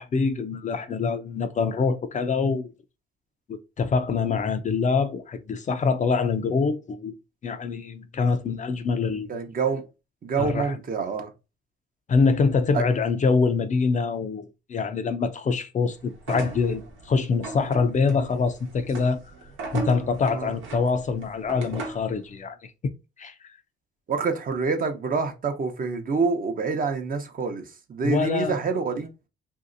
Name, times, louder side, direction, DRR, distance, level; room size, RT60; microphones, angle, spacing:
voice 1, 0.0-2.7 3.8-7.1 7.4-9.3 10.4-10.8 12.1-16.8 17.1-19.2 19.7-22.7 23.2-23.3 28.0-28.6, left 4 dB, 40° left, 0.5 m, -24 dB
voice 2, 9.3-9.9 10.2-11.3 12.7-12.8 20.3-20.6 24.1-29.1, right 5 dB, 45° right, 0.7 m, -27 dB
sound 1, 16.2-22.1, right 4 dB, 90° right, 1.0 m, -37 dB
3.0 x 2.7 x 2.5 m
cardioid pair, 90°, 20 cm